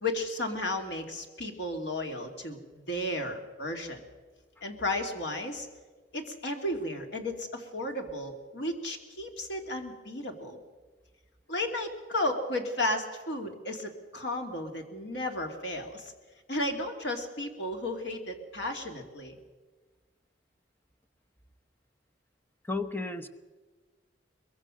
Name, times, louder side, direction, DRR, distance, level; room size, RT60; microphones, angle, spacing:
voice 1, 0.0-4.0 4.6-5.7 6.1-10.6 11.5-16.1 16.5-19.4, left 1 dB, 75° left, 4 dB, 2.6 m, -34 dB
voice 2, 22.6-23.3, left 3 dB, 10° left, 7 dB, 1.0 m, -33 dB
23.0 x 22.0 x 6.4 m, 1.3 s
head